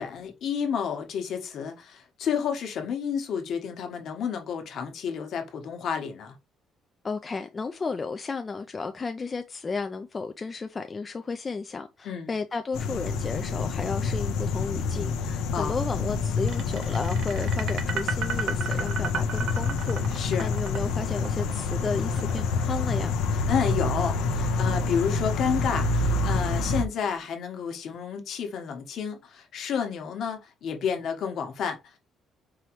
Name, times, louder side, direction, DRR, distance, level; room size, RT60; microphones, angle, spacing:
voice 1, 0.0-6.3 12.0-12.3 15.5-15.8 20.1-20.5 23.5-32.0, left 7 dB, 55° left, 1.1 m, -30 dB
voice 2, 7.0-20.0 20.4-23.1, left 4 dB, 25° left, 0.3 m, -33 dB
sound 1, 12.7-26.8, left 4 dB, 85° left, 0.6 m, -27 dB
sound 2, 16.5-23.6, right 6 dB, 60° right, 0.8 m, -34 dB
4.8 x 2.9 x 3.0 m
cardioid pair, 140°, 0 cm